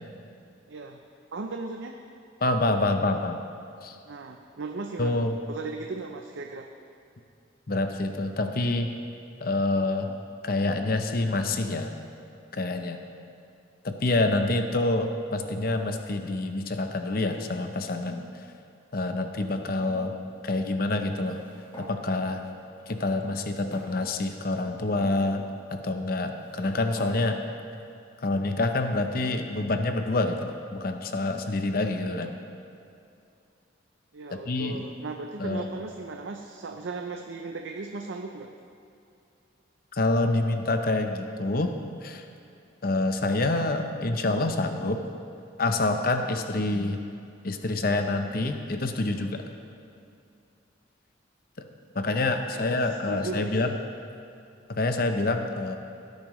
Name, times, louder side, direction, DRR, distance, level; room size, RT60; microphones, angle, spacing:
voice 1, 0.7-1.0 1.3-2.0 4.1-6.7 34.1-38.5 52.5-53.7, right 3 dB, 75° right, 3 dB, 0.6 m, -37 dB
voice 2, 2.4-3.4 3.8-4.0 5.0-5.4 7.7-8.9 9.4-10.2 10.4-11.9 12.5-13.0 13.8-18.3 18.9-20.1 20.4-21.4 21.8-22.4 22.9-27.4 28.2-32.3 34.3-34.8 35.4-35.7 39.9-41.7 42.0-42.2 42.8-45.1 45.6-47.0 47.4-49.4 51.9-53.8 54.7-55.8, left 2 dB, 50° left, 6 dB, 0.7 m, -27 dB
sound 1, 21.1-22.0 22.8-22.9 23.7-24.5 25.0-25.2 26.1-27.2, equal, 25° left, 1.7 m, -47 dB
17.0 x 9.4 x 3.1 m, 2.6 s
head